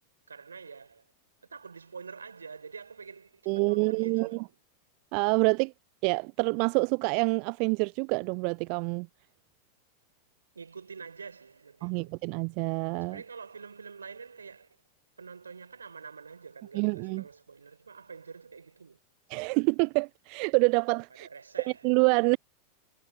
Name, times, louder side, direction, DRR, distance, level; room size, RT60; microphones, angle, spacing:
voice 1, 0.3-1.1 1.4-4.5 10.5-12.1 13.0-14.8 15.2-19.0 21.1-22.0, right 5 dB, 75° right, 3.3 m, -46 dB
voice 2, 3.5-4.3 5.1-5.7 6.0-9.1 11.8-13.2 16.7-17.2 19.3-21.3 21.8-22.4, right 39 dB, 45° right, 0.3 m, -26 dB
figure-of-eight pair, 90°, 0 cm